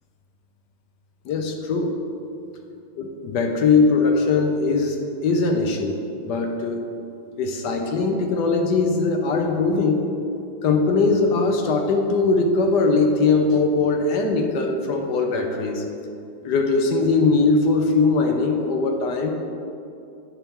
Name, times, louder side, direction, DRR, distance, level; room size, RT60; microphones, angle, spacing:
voice 1, 1.2-1.9 3.0-6.0 6.2-6.8 7.4-10.0 10.6-15.8 16.4-19.3, left 3 dB, 70° left, 4 dB, 1.2 m, -20 dB
9.8 x 5.8 x 3.6 m, 2.6 s
omnidirectional pair, 2.1 m